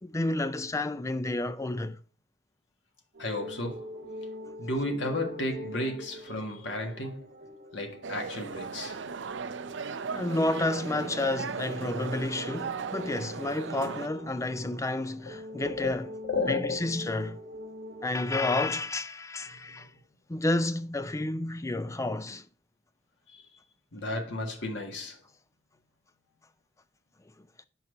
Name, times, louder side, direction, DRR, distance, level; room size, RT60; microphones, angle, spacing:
voice 1, 0.0-2.0 8.8-8.9 10.1-16.1 16.5-17.4 18.0-19.9 20.3-22.5, left 2 dB, 15° left, 0.4 m, -30 dB
sound 1, 3.1-18.1, equal, 60° right, 1.2 m, -45 dB
voice 2, 3.2-4.2 4.6-7.3 7.7-9.0 15.6-15.9 16.3-16.8 23.3-23.4 23.9-25.2, left 2 dB, 80° left, 1.7 m, -33 dB
sound 2, 8.0-14.1, right 5 dB, 80° right, 0.5 m, -37 dB
5.8 x 4.8 x 6.5 m
head